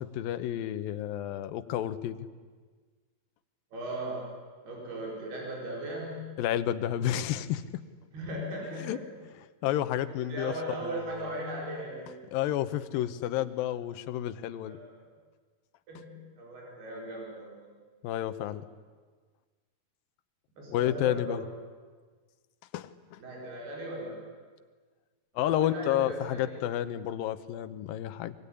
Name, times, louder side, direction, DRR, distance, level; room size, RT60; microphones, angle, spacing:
voice 1, 0.0-2.2 6.4-7.6 8.8-9.0 9.6-10.5 10.8-11.3 12.3-14.8 18.0-18.7 20.7-21.4 22.7-23.2 25.4-28.3, left 12 dB, 75° left, 12 dB, 2.6 m, -30 dB
voice 2, 3.7-4.3 4.6-6.3 8.1-9.1 10.1-12.2 14.6-15.1 15.9-17.7 20.6-21.4 23.2-24.2 25.4-26.6, right 1 dB, 80° right, -2 dB, 6.8 m, -38 dB
24.0 x 22.0 x 10.0 m, 1.5 s
omnidirectional pair, 4.5 m